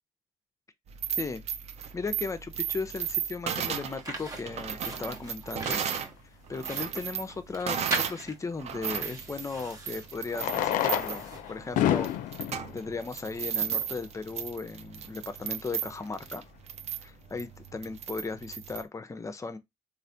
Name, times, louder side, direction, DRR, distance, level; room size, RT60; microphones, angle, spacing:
sound 1, 0.9-6.1 6.5-8.2 8.6-18.8, right 8 dB, 50° right, 0.5 m, -35 dB
voice 1, 1.9-5.8 6.5-12.1 12.7-16.4 17.0-19.6, left 4 dB, 20° left, 0.5 m, -36 dB
sound 2, 3.8-12.3, right 2 dB, 25° right, 1.0 m, -41 dB
Fireworks, 6.7-6.8 9.1-9.2 10.3-14.0 14.8-14.9 15.1-15.2 15.4-15.5 16.0-16.2, left 12 dB, 75° left, 0.4 m, -30 dB
3.2 x 2.4 x 2.7 m
cardioid pair, 85°, 14 cm